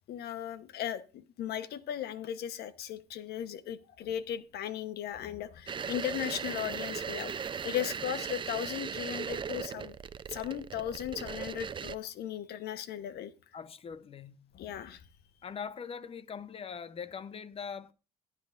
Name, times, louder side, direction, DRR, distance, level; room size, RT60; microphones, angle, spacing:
voice 1, 0.1-10.0 10.3-13.3 14.5-15.0, left 10 dB, 70° left, 1.0 m, -37 dB
sound 1, 5.7-11.9, right 7 dB, 30° right, 0.5 m, -38 dB
voice 2, 13.5-14.5 15.4-17.9, left 6 dB, 35° left, 0.7 m, -42 dB
16.0 x 9.6 x 2.5 m
cardioid pair, 110°, 17 cm